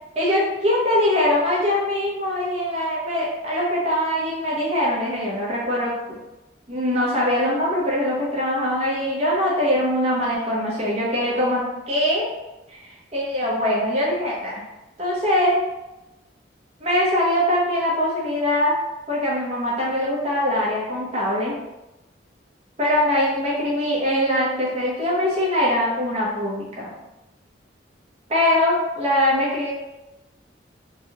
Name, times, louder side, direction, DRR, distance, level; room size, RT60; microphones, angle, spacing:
voice 1, 0.1-5.9 6.7-12.3 12.7-14.6 15.0-15.6 16.8-18.7 19.1-21.6 22.8-26.9 28.3-29.7, left 1 dB, 35° right, -5 dB, 0.9 m, -22 dB
3.4 x 2.2 x 2.9 m, 0.99 s
head